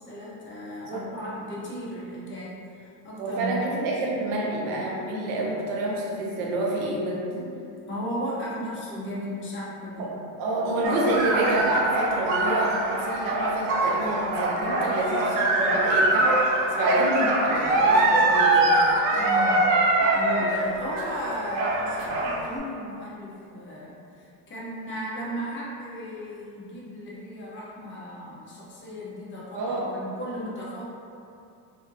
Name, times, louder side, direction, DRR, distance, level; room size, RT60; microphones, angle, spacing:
voice 1, 0.0-3.5 7.9-10.1 19.1-19.7 20.0-30.9, equal, 25° left, -7 dB, 0.6 m, -35 dB
voice 2, 3.2-7.5 10.0-10.1 10.4-18.9 29.5-29.9, right 2 dB, 45° right, -3 dB, 0.6 m, -28 dB
sound 1, 10.8-22.5, right 2 dB, 85° right, 0.6 m, -23 dB
2.5 x 2.1 x 2.6 m, 2.6 s
supercardioid pair, 120°, 48 cm